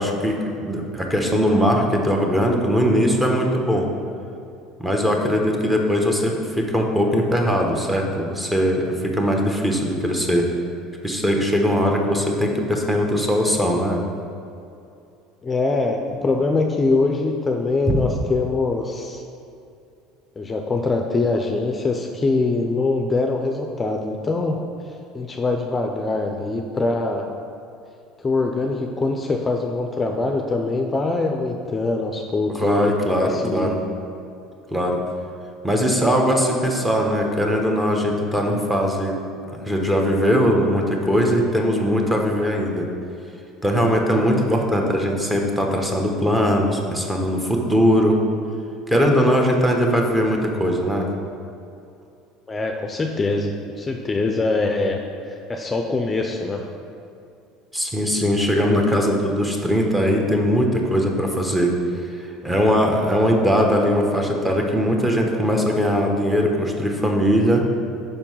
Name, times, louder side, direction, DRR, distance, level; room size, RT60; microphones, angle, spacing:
voice 1, 0.0-3.9 4.8-10.5 11.0-14.0 32.6-33.8 34.7-35.0 35.6-39.2 39.6-42.9 43.6-48.2 48.9-51.1 57.7-61.7 62.1-67.7, equal, 10° right, 1 dB, 1.1 m, -20 dB
voice 2, 15.4-19.2 20.4-24.6 25.1-27.3 28.2-33.8 52.5-53.5 53.8-55.0 55.3-56.7, left 3 dB, 25° left, 3 dB, 0.5 m, -23 dB
5.3 x 4.4 x 5.6 m, 2.5 s
hypercardioid pair, 80°, 0 cm